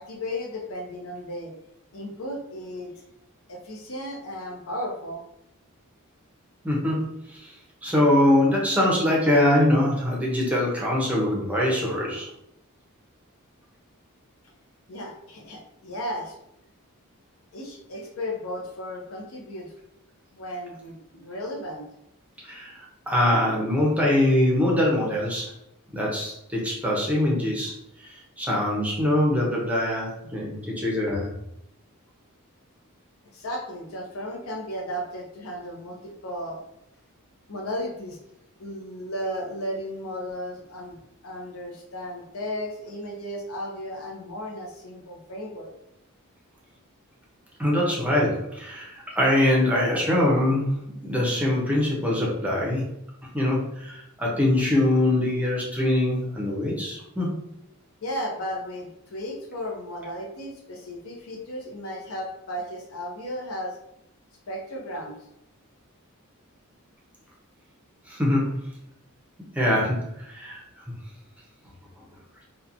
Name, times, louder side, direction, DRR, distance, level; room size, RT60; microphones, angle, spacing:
voice 1, 0.0-1.5 1.9-2.9 3.5-5.2 14.9-16.4 17.5-19.7 20.3-21.8 33.3-36.7 37.5-38.2 38.6-45.7 58.0-63.8 64.5-65.1, equal, 70° left, 1 dB, 0.6 m, -34 dB
voice 2, 6.6-7.5 7.8-12.3 22.4-22.8 23.1-25.5 25.9-31.3 47.6-52.8 53.3-57.3 68.1-68.5 69.5-70.6, left 1 dB, 5° right, -4 dB, 0.6 m, -23 dB
2.8 x 2.2 x 2.5 m, 0.80 s
head